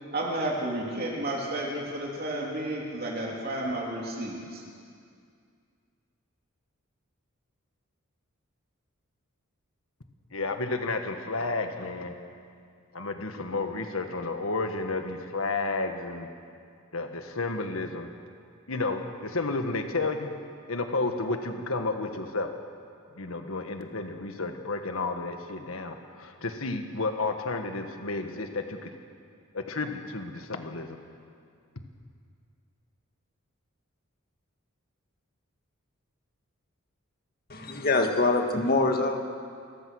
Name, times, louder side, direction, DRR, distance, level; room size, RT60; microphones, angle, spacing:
voice 1, 0.1-4.6, right 1 dB, 45° right, -2 dB, 3.2 m, -32 dB
voice 2, 10.3-12.1 12.9-16.3 16.9-18.1 18.7-20.3 20.7-22.5 23.2-28.9 29.5-31.0, left 3 dB, 70° left, 6 dB, 1.5 m, -31 dB
voice 3, 37.5-39.2, left 2 dB, 45° left, 4 dB, 1.8 m, -24 dB
28.5 x 14.5 x 6.4 m, 2.3 s
head